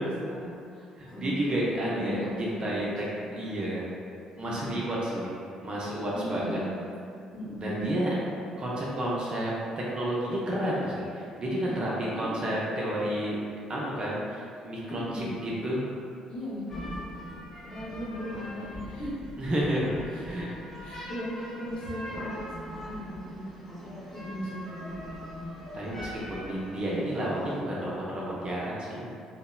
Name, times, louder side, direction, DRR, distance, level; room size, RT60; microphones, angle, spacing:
voice 1, 0.0-1.6 1.8-2.9 4.4-4.8 6.1-6.7 7.3-8.3 11.6-12.5 14.9-15.4 16.3-16.8 17.6-19.3 20.1-20.5 20.8-25.5 26.4-27.1, equal, 35° left, -9 dB, 1.0 m, -38 dB
voice 2, 1.0-2.9 3.3-3.8 4.4-5.3 5.6-6.6 7.6-8.1 8.6-13.4 13.7-15.9 19.4-19.9 20.2-20.5 25.7-29.1, right 1 dB, 35° right, -6 dB, 0.5 m, -31 dB
sound 1, 16.7-27.6, equal, 10° left, 0.6 m, -42 dB
2.9 x 2.1 x 2.3 m, 2.4 s
figure-of-eight pair, 45°, 3 cm